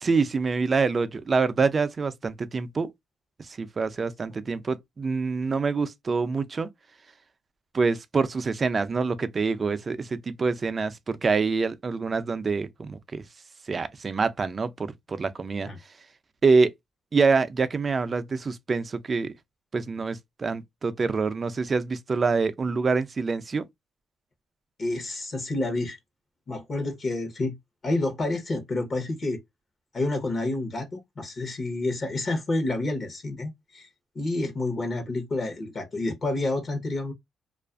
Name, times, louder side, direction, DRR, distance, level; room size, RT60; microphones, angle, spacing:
voice 1, 0.0-2.9 3.4-6.7 7.7-13.2 13.7-15.7 16.4-16.7 17.1-19.3 19.7-23.7, right 4 dB, 35° right, 0.4 m, -26 dB
voice 2, 24.8-26.0 26.5-27.5 27.8-29.4 29.9-33.9 34.1-37.1, left 2 dB, 45° left, 0.8 m, -29 dB
2.4 x 2.4 x 2.3 m
cardioid pair, 90°, 0 cm